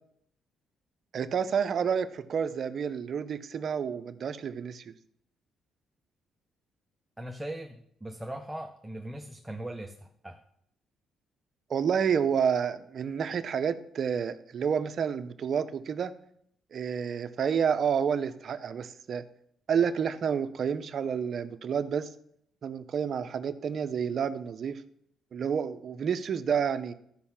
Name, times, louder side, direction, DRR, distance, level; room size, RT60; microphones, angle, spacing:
voice 1, 1.1-4.9 11.7-16.1 16.7-19.2 19.7-22.1 22.6-24.8 25.3-26.9, right 7 dB, 55° right, 12 dB, 0.7 m, -29 dB
voice 2, 7.2-10.4, right 1 dB, 5° right, 5 dB, 0.8 m, -39 dB
13.0 x 5.4 x 5.9 m, 0.71 s
cardioid pair, 90°, 0 cm